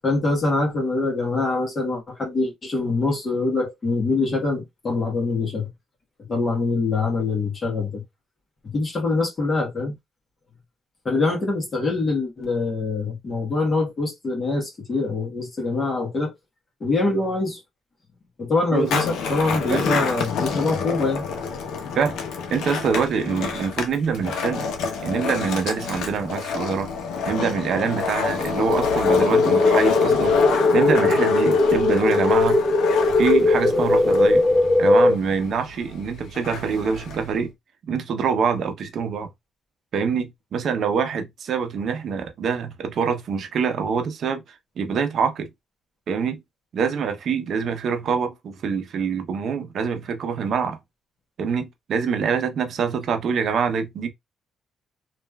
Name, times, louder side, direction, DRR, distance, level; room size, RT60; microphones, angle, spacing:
voice 1, 0.0-5.7 6.3-8.0 8.6-9.9 11.0-16.3 16.8-17.6 18.4-21.2, left 3 dB, 40° left, 1.2 m, -24 dB
Skateboard, 18.7-37.4, left 5 dB, 80° left, 0.7 m, -28 dB
voice 2, 22.5-24.7 25.0-26.9 27.3-30.4 30.7-32.6 33.2-34.4 34.8-37.5 37.9-39.3 39.9-44.4 44.8-45.5 46.1-46.4 46.7-50.8 51.4-54.1, right 6 dB, 60° right, 0.7 m, -25 dB
sound 1, 28.7-35.1, left 3 dB, 15° left, 0.4 m, -19 dB
3.1 x 2.4 x 2.2 m
cardioid pair, 90°, 0 cm